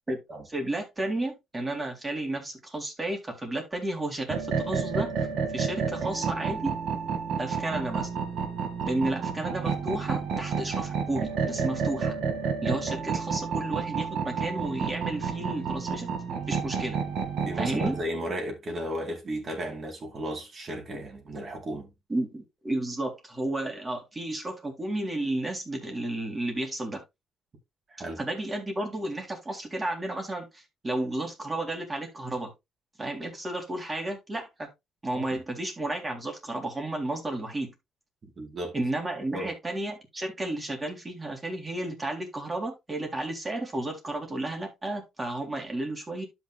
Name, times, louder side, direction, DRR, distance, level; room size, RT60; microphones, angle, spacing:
voice 1, 0.5-5.3 5.5-6.7 7.4-8.1 8.9-12.1 12.6-16.1 16.5-17.0 17.6-18.0 22.1-27.0 28.2-32.5 33.0-34.7 35.0-37.7 38.7-46.3, right 1 dB, 25° right, 3.7 m, -32 dB
sound 1, 4.3-18.0, right 6 dB, 70° right, 2.6 m, -30 dB
voice 2, 17.4-21.9 27.9-28.2 35.1-35.2 38.4-38.8 39.3-39.5, equal, 45° right, 4.3 m, -34 dB
12.5 x 6.1 x 2.5 m
cardioid pair, 90°, 0 cm